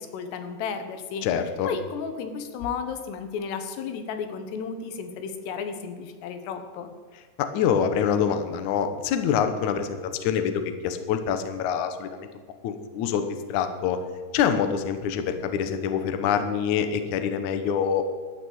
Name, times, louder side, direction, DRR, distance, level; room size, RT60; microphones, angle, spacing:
voice 1, 0.0-1.3 1.7-6.9, left 6 dB, 85° left, 8 dB, 3.4 m, -33 dB
voice 2, 1.2-1.7 7.4-12.3 12.6-14.0 14.3-18.0, left 8 dB, 70° left, 8 dB, 1.9 m, -25 dB
13.0 x 9.2 x 8.1 m, 1.5 s
omnidirectional pair, 4.8 m